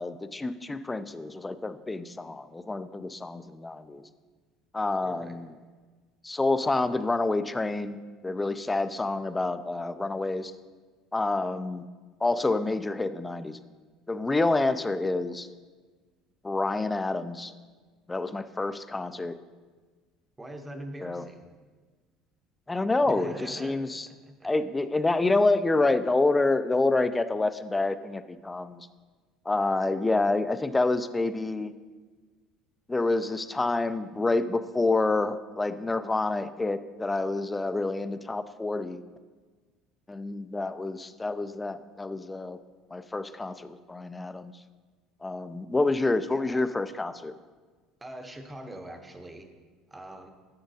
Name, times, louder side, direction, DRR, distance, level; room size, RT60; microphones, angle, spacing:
voice 1, 0.0-4.0 4.7-5.5 6.2-8.0 8.2-10.5 11.1-11.8 12.2-13.6 14.1-15.5 16.4-17.5 18.1-19.4 21.0-21.2 22.7-24.1 24.4-28.9 29.5-31.7 32.9-39.0 40.1-42.6 42.9-44.5 45.2-47.3, left 2 dB, 15° left, 12 dB, 0.3 m, -28 dB
voice 2, 5.0-5.4 20.4-21.5 23.0-24.5 46.3-46.6 48.0-49.5 49.9-50.3, right 1 dB, 15° right, 5 dB, 0.8 m, -43 dB
10.0 x 7.0 x 2.7 m, 1.4 s
cardioid pair, 120°, 0 cm